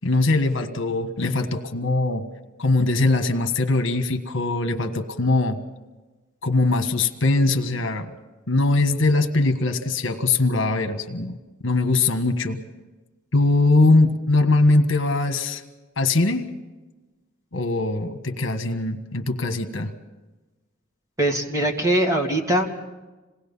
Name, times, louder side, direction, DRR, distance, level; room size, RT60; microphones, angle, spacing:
voice 1, 0.0-2.3 2.6-5.6 6.4-8.1 8.5-11.4 11.6-12.6 13.3-15.6 16.0-16.5 17.5-19.9, left 2 dB, 65° left, 6 dB, 1.5 m, -21 dB
voice 2, 21.2-22.8, right 1 dB, 15° right, 1 dB, 2.2 m, -22 dB
27.0 x 19.0 x 5.6 m, 1.2 s
head